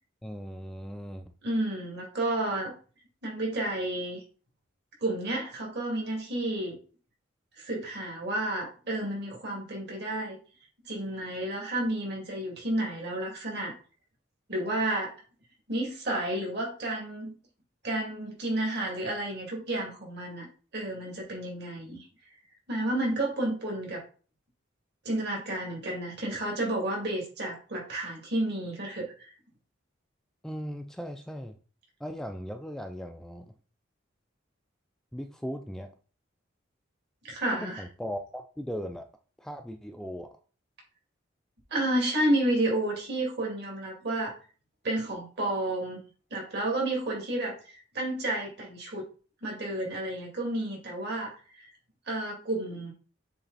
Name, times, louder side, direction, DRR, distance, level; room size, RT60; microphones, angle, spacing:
voice 1, 0.2-1.2 30.4-31.5 32.0-33.5 35.1-35.9 37.6-39.1 39.4-40.3, equal, 5° left, 5 dB, 0.4 m, -38 dB
voice 2, 1.4-2.7 3.2-4.2 5.0-6.8 7.6-10.4 10.8-13.8 14.5-15.1 15.7-17.3 17.8-20.5 20.7-22.1 22.7-24.0 25.0-29.3 37.2-37.8 41.7-44.3 44.8-46.0 46.3-49.0 49.4-51.7 52.1-52.9, right 1 dB, 55° right, -2 dB, 2.7 m, -31 dB
6.9 x 3.4 x 4.1 m, 0.39 s
head